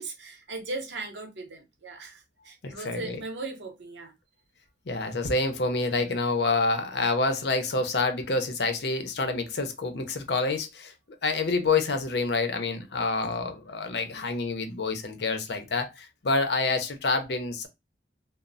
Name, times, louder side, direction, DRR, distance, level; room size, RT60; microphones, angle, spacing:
voice 1, 0.0-4.1, right 3 dB, 75° right, 0.7 m, -38 dB
voice 2, 2.6-3.2 4.9-10.9 11.2-17.7, left 3 dB, 65° left, 0.6 m, -27 dB
3.0 x 2.0 x 2.4 m
head